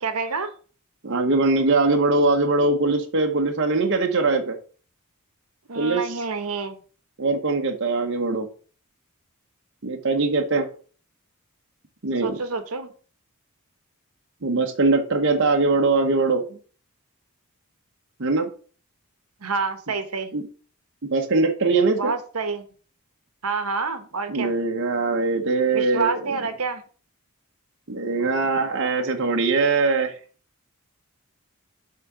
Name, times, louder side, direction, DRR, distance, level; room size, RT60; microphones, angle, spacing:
voice 1, 0.0-0.5 5.7-6.8 12.2-12.9 19.4-20.3 21.9-22.6 23.4-24.5 25.7-26.8, right 4 dB, 80° right, 9 dB, 1.1 m, -28 dB
voice 2, 1.0-4.6 5.8-6.0 7.2-8.5 9.8-10.7 12.0-12.4 14.4-16.4 18.2-18.5 20.3-20.4 21.0-22.1 24.3-26.4 27.9-30.2, right 3 dB, 55° right, 2 dB, 0.9 m, -21 dB
7.3 x 3.8 x 5.9 m, 0.40 s
head